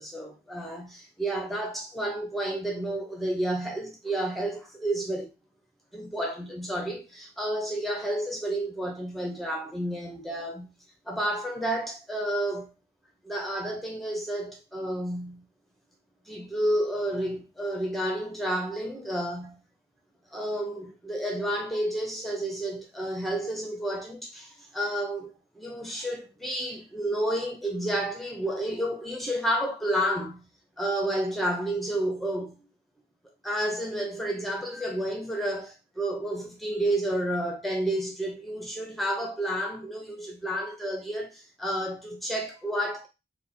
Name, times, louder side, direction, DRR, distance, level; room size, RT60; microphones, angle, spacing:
voice 1, 0.0-5.3 5.9-10.7 11.1-12.7 13.2-15.5 16.3-19.6 20.3-30.5 30.8-32.6 33.4-43.1, right 1 dB, ahead, 0.9 m, -30 dB
4.2 x 2.5 x 4.2 m
head